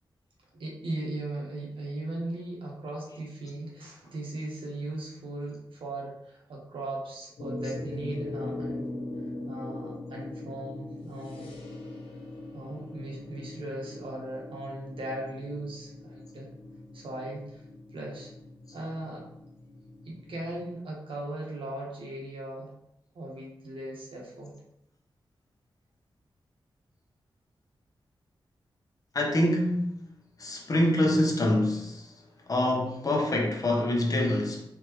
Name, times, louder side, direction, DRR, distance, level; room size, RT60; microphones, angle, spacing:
voice 1, 0.5-8.9 9.5-11.5 12.5-16.5 16.9-17.6 17.9-18.3 18.7-19.3 20.0-22.7 23.1-24.5, right 1 dB, 80° right, -2 dB, 1.3 m, -38 dB
sound 1, 7.4-20.7, left 2 dB, 80° left, 1.1 m, -40 dB
voice 2, 29.1-29.9 30.4-32.1 32.5-34.6, left 1 dB, 40° left, -1 dB, 0.9 m, -25 dB
4.5 x 3.5 x 3.1 m, 0.80 s
wide cardioid pair, 140°, 9 cm